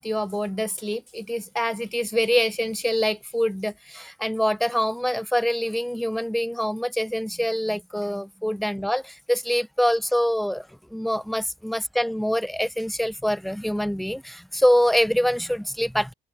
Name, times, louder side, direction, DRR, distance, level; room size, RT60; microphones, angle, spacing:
voice 1, 0.0-16.1, equal, ahead, 2.2 m, -25 dB
open air
cardioid pair, 110°, 17 cm